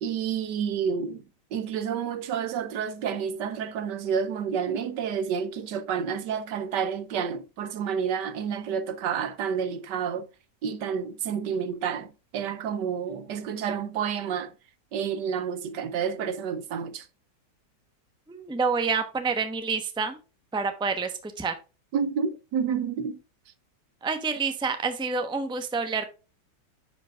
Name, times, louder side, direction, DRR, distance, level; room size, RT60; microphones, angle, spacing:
voice 1, 0.0-1.2 1.5-10.3 10.6-14.5 14.9-17.0 21.9-23.2, right 7 dB, 80° right, 1.4 m, -29 dB
voice 2, 18.3-20.2 20.5-21.5 24.0-26.1, right 4 dB, 5° right, 0.6 m, -28 dB
10.0 x 5.1 x 2.4 m
omnidirectional pair, 1.9 m